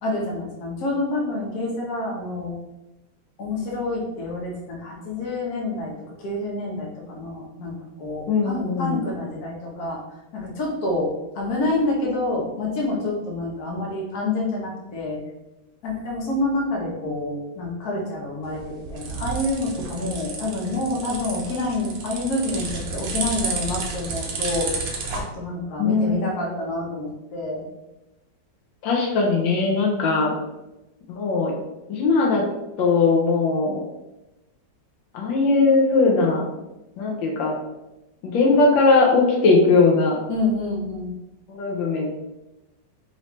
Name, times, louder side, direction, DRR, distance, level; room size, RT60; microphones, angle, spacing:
voice 1, 0.0-2.6 3.4-5.9 6.2-10.0 10.3-15.2 15.8-27.7 40.3-41.1, left 2 dB, 55° left, -3 dB, 1.5 m, -28 dB
voice 2, 8.3-9.1 25.8-26.5 28.8-30.3 31.1-31.5 31.9-32.4 32.8-33.8 35.1-36.5 37.0-37.5 38.2-40.2 41.5-42.1, left 3 dB, 85° left, -1 dB, 1.4 m, -19 dB
sound 1, 18.4-25.2, right 4 dB, 80° right, 1.4 m, -31 dB
4.2 x 3.1 x 3.0 m, 0.96 s
omnidirectional pair, 2.0 m